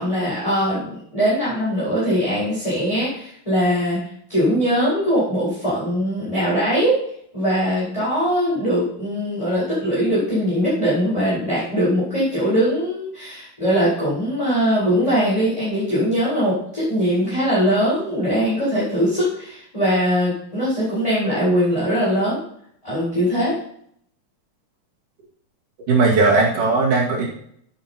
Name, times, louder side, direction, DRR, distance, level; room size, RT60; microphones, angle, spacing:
voice 1, 0.0-7.0 7.3-22.4 22.8-23.6, equal, 10° left, -9 dB, 4.5 m, -21 dB
voice 2, 25.9-27.3, right 3 dB, 75° right, -5 dB, 3.6 m, -17 dB
12.5 x 10.0 x 3.0 m, 0.69 s
omnidirectional pair, 3.6 m